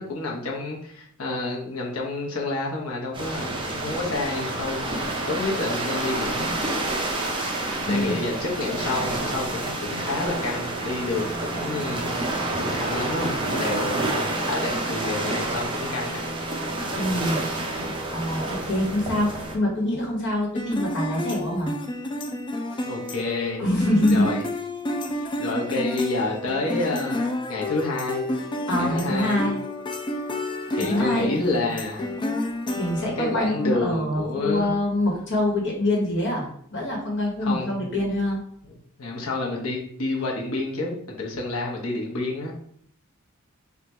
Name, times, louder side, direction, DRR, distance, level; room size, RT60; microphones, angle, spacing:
voice 1, 0.0-4.8 5.3-6.5 7.8-12.1 12.6-16.2 22.8-23.6 24.1-24.4 25.4-28.3 28.8-29.5 30.7-32.1 33.2-34.7 37.4-37.8 38.6-42.5, left 2 dB, 80° left, -1 dB, 1.0 m, -29 dB
sound 1, 3.1-19.6, right 2 dB, 25° right, 0.7 m, -29 dB
voice 2, 7.8-8.2 16.9-17.4 18.1-21.8 23.6-24.3 25.2-25.4 28.7-29.6 30.9-31.5 32.7-38.4, left 1 dB, 60° left, -2 dB, 1.4 m, -25 dB
sound 2, 20.6-33.8, left 1 dB, 20° left, 0.4 m, -31 dB
3.5 x 2.5 x 4.2 m, 0.66 s
head